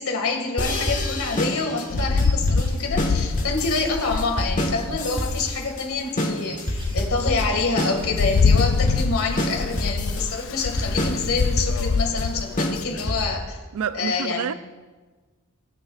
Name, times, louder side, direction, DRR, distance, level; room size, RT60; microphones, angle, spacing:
voice 1, 0.0-13.6 13.9-14.5, left 4 dB, 75° left, 1.9 m, -27 dB
sound 1, 0.6-13.5, left 1 dB, 35° left, 1.5 m, -27 dB
sound 2, 1.0-9.8 10.1-10.9, right 1 dB, 25° right, 3.0 m, -46 dB
Rain, 1.9-5.4 6.0-6.1 6.5-13.1, left 5 dB, 60° left, 0.4 m, -25 dB
voice 2, 13.7-14.5, right 7 dB, 80° right, 0.4 m, -28 dB
21.0 x 7.6 x 2.4 m
head